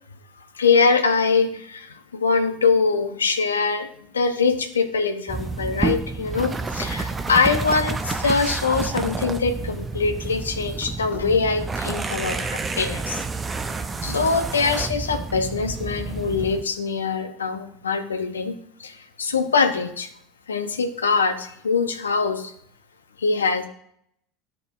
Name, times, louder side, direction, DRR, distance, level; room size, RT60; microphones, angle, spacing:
voice 1, 0.5-3.9 4.1-13.2 14.0-18.5 18.8-20.1 20.5-22.5 23.2-23.7, left 4 dB, 90° left, 8 dB, 0.8 m, -23 dB
sound 1, 5.3-16.6, right 4 dB, 20° right, 0.5 m, -29 dB
12.5 x 4.6 x 2.5 m, 0.68 s
hypercardioid pair, 85°, 0 cm